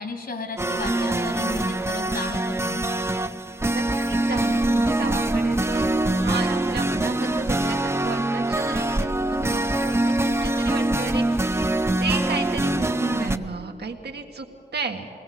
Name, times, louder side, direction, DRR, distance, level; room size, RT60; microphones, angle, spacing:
voice 1, 0.0-2.9, left 3 dB, 65° left, 5 dB, 2.7 m, -34 dB
sound 1, 0.6-13.4, right 1 dB, 15° right, 0.6 m, -24 dB
voice 2, 3.7-11.7 12.0-14.5 14.7-15.1, right 4 dB, 80° right, 4 dB, 1.6 m, -33 dB
22.5 x 18.0 x 7.6 m, 2.9 s
wide cardioid pair, 100°, 17 cm